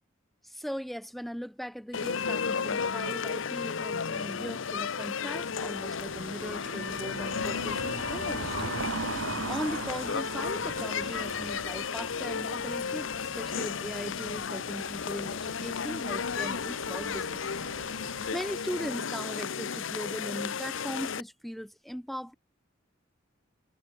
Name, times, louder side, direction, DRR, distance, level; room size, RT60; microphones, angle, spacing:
voice 1, 0.4-8.8 9.5-17.5 18.3-22.3, equal, ahead, 0.4 m, -39 dB
sound 1, 1.9-21.2, left 6 dB, 70° left, 0.8 m, -33 dB
sound 2, 5.5-18.3, right 3 dB, 85° right, 2.2 m, -41 dB
sound 3, 5.9-18.8, right 1 dB, 35° right, 6.0 m, -60 dB
head